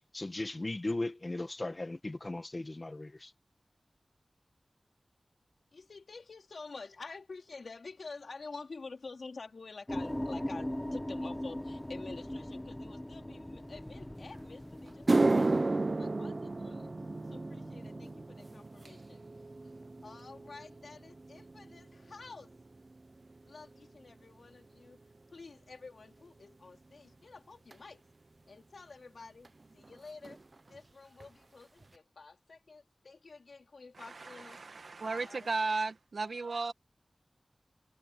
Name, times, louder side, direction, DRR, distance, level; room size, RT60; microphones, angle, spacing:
voice 1, 0.1-3.3, left 2 dB, 40° left, 1.8 m, -37 dB
voice 2, 5.7-16.9 17.3-19.2 19.6-19.7 20.0-22.5 23.4-25.0 25.3-28.1 28.5-30.4 30.7-34.7 35.0-35.5 36.2-36.7, left 4 dB, 85° left, 4.0 m, -49 dB
sound 1, 9.9-18.3, left 1 dB, 15° left, 1.0 m, -41 dB
sound 2, 14.3-14.4 14.9-23.4 23.7-24.1 24.9-25.0 27.7-27.8 29.4-29.5 29.7-30.0 30.2-30.8 31.2-31.3 31.8-31.9, right 2 dB, 50° right, 0.8 m, -33 dB
voice 3, 34.0-36.7, right 3 dB, 85° right, 1.9 m, -35 dB
wide cardioid pair, 70°, 0 cm